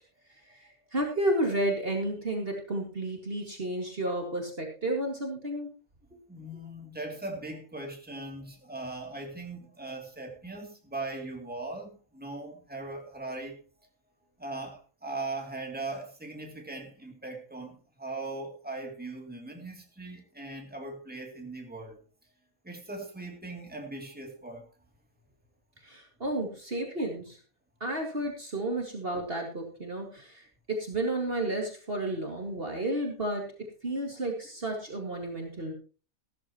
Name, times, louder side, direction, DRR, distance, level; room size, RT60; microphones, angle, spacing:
voice 1, 0.4-5.7 25.8-27.4 27.8-35.7, right 1 dB, 40° right, 2 dB, 2.4 m, -32 dB
voice 2, 6.3-13.6 14.4-22.0 22.6-24.7, right 2 dB, 5° right, 2 dB, 2.7 m, -39 dB
15.0 x 13.5 x 3.0 m, 0.36 s
omnidirectional pair, 1.5 m